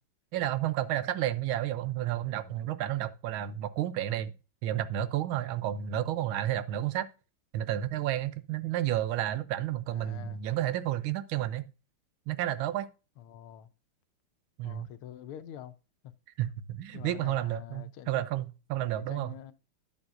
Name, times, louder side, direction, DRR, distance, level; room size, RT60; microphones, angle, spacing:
voice 1, 0.3-4.3 4.6-7.1 7.5-11.7 12.3-12.9 14.6-14.9 16.4-19.4, right 12 dB, 75° right, 1.5 m, -31 dB
voice 2, 9.9-10.4 13.2-13.7 14.6-15.8 16.0-16.1 16.9-18.2 19.0-19.5, left 11 dB, 90° left, 1.6 m, -46 dB
10.5 x 7.1 x 2.5 m
omnidirectional pair, 2.3 m